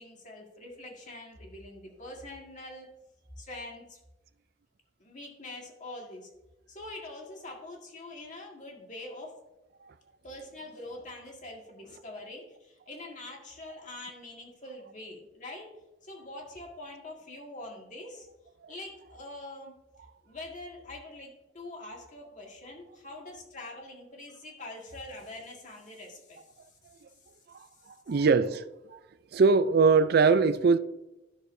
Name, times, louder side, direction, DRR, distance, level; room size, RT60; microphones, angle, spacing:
voice 1, 0.0-2.9 3.4-4.0 5.0-6.3 6.7-9.4 10.2-15.7 16.0-18.3 18.7-19.8 20.2-26.4, left 2 dB, 45° left, 1.9 m, -44 dB
voice 2, 28.1-28.6 28.9-29.0 29.3-30.8, right 4 dB, 60° right, 0.4 m, -21 dB
12.0 x 6.5 x 2.7 m
head